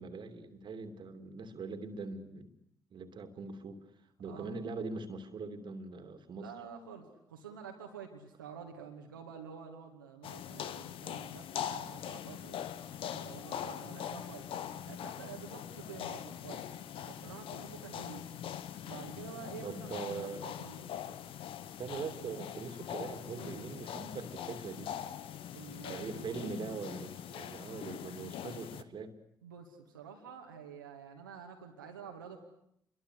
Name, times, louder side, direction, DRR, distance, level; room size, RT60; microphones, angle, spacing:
voice 1, 0.0-2.5 2.9-3.9 4.2-6.5 19.6-20.4 21.1-21.2 21.8-24.9 25.9-29.1, right 4 dB, 45° right, 8 dB, 2.9 m, -42 dB
voice 2, 4.2-4.6 6.4-12.7 13.0-14.5 14.9-16.6 17.1-18.3 18.8-20.8 23.4-23.7 25.5-26.5 29.4-32.4, right 7 dB, 80° right, 2 dB, 2.3 m, -49 dB
sound 1, 10.2-28.8, left 10 dB, 55° left, 1.3 m, -42 dB
29.0 x 23.5 x 8.4 m, 0.75 s
figure-of-eight pair, 45°, 11 cm